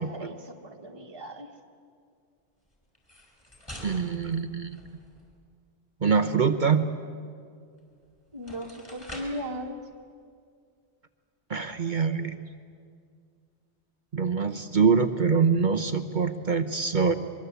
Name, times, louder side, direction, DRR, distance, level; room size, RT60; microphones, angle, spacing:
voice 1, 0.0-1.5 8.3-9.8, equal, 20° right, 1 dB, 1.6 m, -37 dB
sound 1, 2.9-5.3 7.8-7.9 8.3-9.5, equal, 20° left, 5.5 m, -45 dB
voice 2, 3.8-4.8 6.0-6.9 11.5-12.4 14.1-17.1, right 5 dB, 45° right, 8 dB, 1.0 m, -24 dB
23.5 x 23.0 x 8.2 m, 2.2 s
omnidirectional pair, 1.2 m